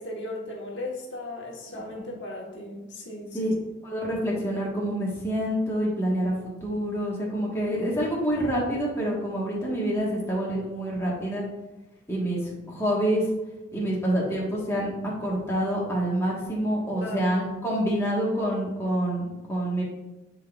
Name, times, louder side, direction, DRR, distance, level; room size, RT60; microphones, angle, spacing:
voice 1, 0.0-3.5 7.7-7.8 17.0-17.3, left 1 dB, 65° left, -2 dB, 1.3 m, -37 dB
voice 2, 1.7-2.1 3.3-3.5 3.8-6.3 6.6-11.5 12.1-12.4 12.7-13.2 13.7-19.8, equal, 15° left, -5 dB, 1.3 m, -27 dB
9.9 x 4.0 x 2.4 m, 1.0 s
head